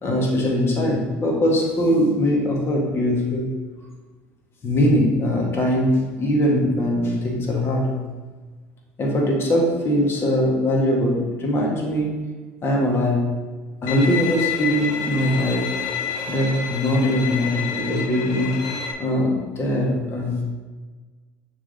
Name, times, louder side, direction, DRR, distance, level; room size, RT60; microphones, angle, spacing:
voice 1, 0.0-3.5 4.6-8.0 9.0-12.2 12.6-13.3 13.8-15.7 16.3-18.6 19.0-20.4, equal, 40° left, -1 dB, 1.8 m, -21 dB
Bowed string instrument, 13.9-18.9, left 7 dB, 80° left, 0.8 m, -29 dB
6.5 x 3.7 x 5.5 m, 1.4 s
supercardioid pair, 90°, 7 cm